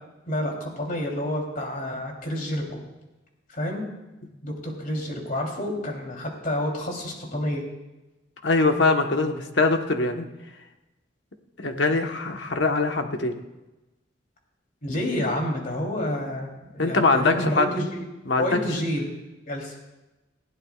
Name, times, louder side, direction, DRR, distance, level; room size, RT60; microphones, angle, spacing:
voice 1, 0.3-2.8 3.5-3.9 4.4-7.6 14.8-18.1 18.4-19.1 19.5-19.8, left 1 dB, 50° left, 0 dB, 3.4 m, -29 dB
voice 2, 8.4-10.3 11.6-13.3 16.8-17.7 18.3-18.5, left 3 dB, 75° left, 4 dB, 1.3 m, -22 dB
20.5 x 16.0 x 2.5 m, 1.0 s
head